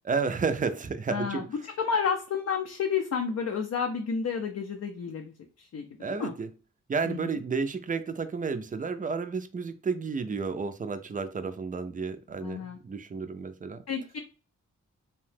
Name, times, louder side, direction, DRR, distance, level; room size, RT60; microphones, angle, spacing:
voice 1, 0.1-1.5 6.0-6.5 6.9-13.8, right 5 dB, 30° right, 10 dB, 0.4 m, -31 dB
voice 2, 1.1-1.4 1.8-5.8 6.1-6.3 7.0-7.3 12.4-12.8 13.9-14.2, left 6 dB, 55° left, 4 dB, 0.5 m, -31 dB
2.8 x 2.1 x 3.2 m, 0.36 s
cardioid pair, 65°, 31 cm